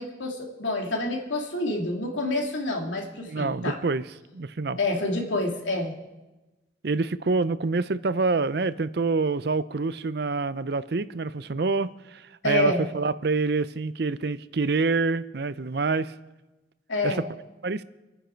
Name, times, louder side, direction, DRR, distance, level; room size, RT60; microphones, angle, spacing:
voice 1, 0.0-3.8 4.8-5.9 12.4-12.8 16.9-17.2, left 2 dB, 85° left, 1 dB, 2.8 m, -28 dB
voice 2, 3.3-4.0 4.3-4.8 6.8-16.1 17.0-17.1 17.6-17.8, right 3 dB, 60° right, 15 dB, 0.5 m, -26 dB
27.5 x 10.0 x 4.5 m, 1.1 s
head